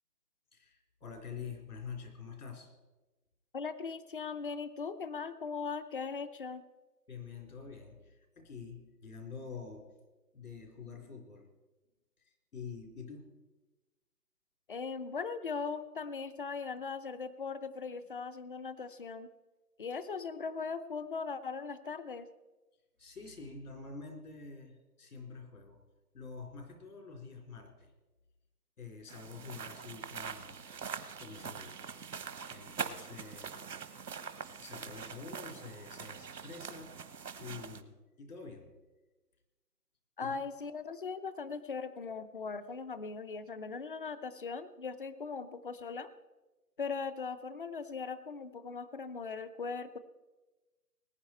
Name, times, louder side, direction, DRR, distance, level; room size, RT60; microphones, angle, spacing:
voice 1, 0.5-2.8 7.1-9.9 10.3-11.5 12.2-13.3 23.0-25.8 26.1-27.9 28.8-30.6 30.9-31.8 32.5-33.9 34.6-37.0 37.4-38.7 40.2-40.5, left 5 dB, 70° left, 3 dB, 3.9 m, -47 dB
voice 2, 3.5-6.6 14.7-19.3 19.8-22.3 40.2-46.1 46.8-50.0, left 5 dB, 35° left, 13 dB, 0.6 m, -39 dB
sound 1, 29.1-37.8, right 6 dB, 85° right, 1.3 m, -43 dB
20.0 x 9.8 x 4.4 m, 1.2 s
hypercardioid pair, 165°, 47 cm